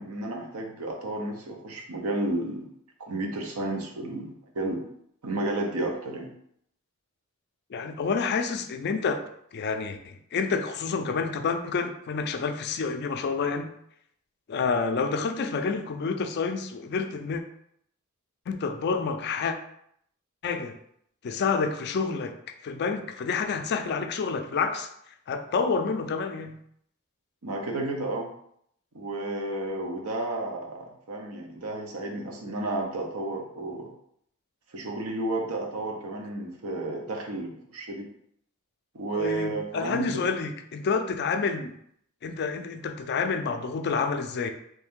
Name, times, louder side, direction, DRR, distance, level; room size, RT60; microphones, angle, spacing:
voice 1, 0.0-2.7 3.0-4.8 5.2-6.3 27.4-28.3 28.9-33.9 34.7-38.1 38.9-40.1, right 2 dB, 90° right, 1 dB, 0.7 m, -32 dB
voice 2, 7.7-9.2 9.5-13.7 14.5-17.4 18.5-19.6 20.4-20.8 21.2-22.3 22.6-24.9 25.3-26.5 39.1-41.7 42.2-44.5, left 5 dB, 50° left, 7 dB, 0.4 m, -28 dB
3.2 x 2.6 x 3.6 m, 0.70 s
head